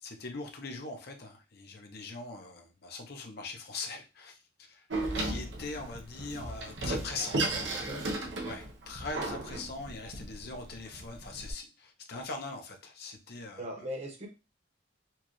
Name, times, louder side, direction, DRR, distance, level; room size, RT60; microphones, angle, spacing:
voice 1, 0.0-4.4 4.7-4.9 5.2-7.4 8.4-13.6, left 3 dB, 55° left, 4 dB, 0.8 m, -41 dB
Door, 4.9-11.5, right 2 dB, 75° right, 0.9 m, -35 dB
voice 2, 7.5-8.0 13.6-14.3, equal, 35° right, 1 dB, 1.1 m, -40 dB
4.5 x 2.4 x 3.0 m, 0.29 s
head